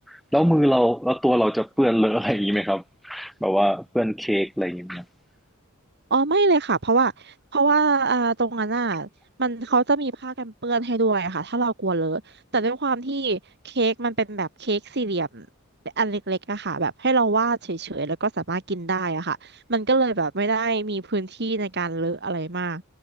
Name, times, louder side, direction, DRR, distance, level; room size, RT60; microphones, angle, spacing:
voice 1, 0.1-5.0, equal, ahead, 2.2 m, -22 dB
voice 2, 6.1-9.1 9.4-12.2 12.5-13.4 13.6-15.5 16.0-19.4 19.7-22.8, right 3 dB, 50° right, 2.2 m, -24 dB
head